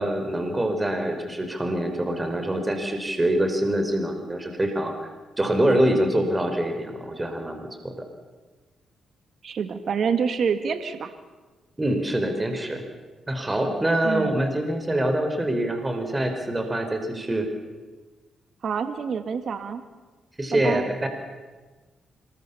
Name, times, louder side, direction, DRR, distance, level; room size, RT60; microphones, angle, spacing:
voice 1, 0.0-5.1 5.4-7.9 11.8-12.8 13.3-17.5 20.4-21.1, right 1 dB, 20° right, 6 dB, 4.5 m, -25 dB
voice 2, 9.4-11.1 14.0-14.4 18.6-19.8 20.5-20.9, right 6 dB, 65° right, 9 dB, 1.8 m, -27 dB
26.0 x 22.0 x 7.0 m, 1.3 s
cardioid pair, 65°, 0 cm